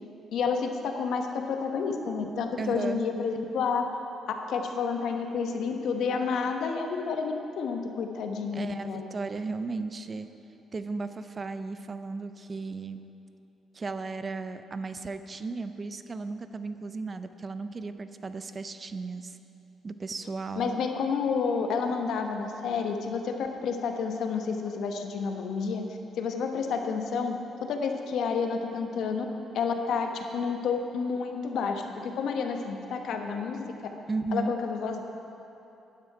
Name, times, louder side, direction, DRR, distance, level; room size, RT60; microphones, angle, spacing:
voice 1, 0.3-3.9 4.3-9.0 20.6-25.9 26.2-29.2 29.5-33.7 34.3-35.0, left 5 dB, 75° left, 4 dB, 1.0 m, -30 dB
voice 2, 2.6-3.0 8.5-10.3 10.7-13.0 13.7-19.4 19.8-20.8 34.1-34.5, right 3 dB, 35° right, 10 dB, 0.5 m, -35 dB
12.0 x 9.6 x 4.8 m, 2.9 s
cardioid pair, 90°, 0 cm